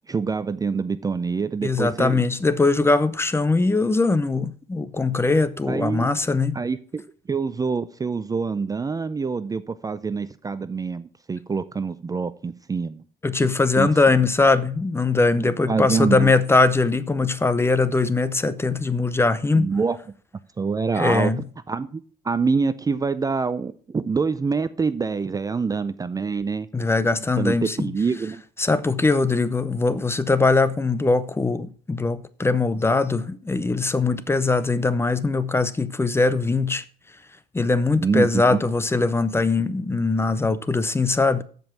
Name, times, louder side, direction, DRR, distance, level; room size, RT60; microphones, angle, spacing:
voice 1, 0.1-2.2 5.7-6.1 6.5-7.0 7.3-13.0 13.8-13.9 15.4-16.3 19.5-20.0 20.6-26.7 27.4-28.4 38.0-38.6, right 5 dB, 20° right, 0.5 m, -26 dB
voice 2, 1.6-6.6 13.2-19.7 21.0-21.4 26.7-27.9 28.6-36.8 37.5-41.4, left 3 dB, 15° left, 0.7 m, -21 dB
14.0 x 5.4 x 6.0 m
cardioid pair, 110°, 17 cm